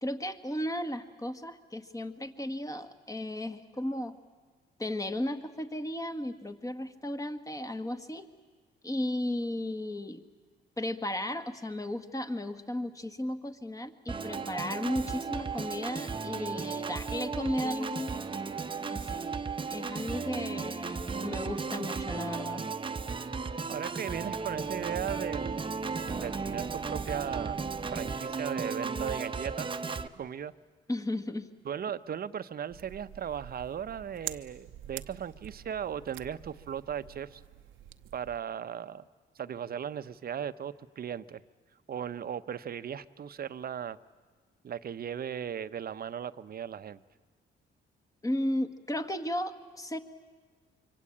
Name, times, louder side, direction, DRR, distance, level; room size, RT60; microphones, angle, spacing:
voice 1, 0.0-4.2 4.8-8.3 8.8-10.2 10.8-18.2 18.9-19.3 19.7-22.6 30.9-31.5 48.2-50.0, left 1 dB, 15° left, 8 dB, 1.7 m, -35 dB
Organ, 14.1-30.1, right 4 dB, 25° right, 1.0 m, -35 dB
voice 2, 23.7-25.7 26.2-27.6 27.9-29.8 30.1-30.5 31.6-37.4 38.1-39.1 39.3-41.4 41.9-44.0 44.6-47.0, right 8 dB, 50° right, 13 dB, 0.9 m, -37 dB
sound 1, 32.7-38.4, right 12 dB, 85° right, 0.9 m, -46 dB
25.0 x 24.5 x 8.7 m, 1.5 s
cardioid pair, 90°, 20 cm